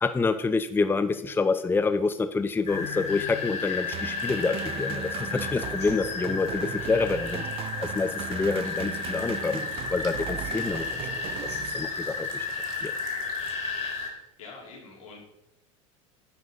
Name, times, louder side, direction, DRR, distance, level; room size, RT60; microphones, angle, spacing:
voice 1, 0.0-7.4 7.8-9.6 9.9-11.1 11.5-12.5 12.8-12.9, left 4 dB, 15° left, 11 dB, 0.6 m, -27 dB
sound 1, 2.7-14.1, left 4 dB, 40° left, 4.2 m, -33 dB
sound 2, 3.9-12.2, right 12 dB, 35° right, 0.3 m, -38 dB
sound 3, 4.1-13.5, right 6 dB, 55° right, 2.3 m, -51 dB
voice 2, 14.0-15.3, left 4 dB, 85° left, -2 dB, 4.1 m, -46 dB
10.0 x 5.9 x 5.6 m, 0.79 s
hypercardioid pair, 95°, 17 cm